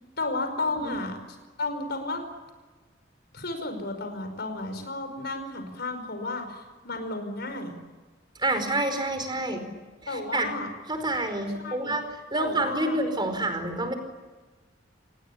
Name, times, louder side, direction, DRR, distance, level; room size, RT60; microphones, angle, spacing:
voice 1, 0.2-1.2 1.6-2.2 3.3-7.7 10.1-10.7 11.6-12.0 12.3-13.3, left 2 dB, 60° left, 7 dB, 5.2 m, -33 dB
voice 2, 8.4-9.6 10.0-10.5 10.9-12.0 12.3-13.9, right 2 dB, 25° right, 8 dB, 4.8 m, -28 dB
28.0 x 20.0 x 8.5 m, 1.3 s
head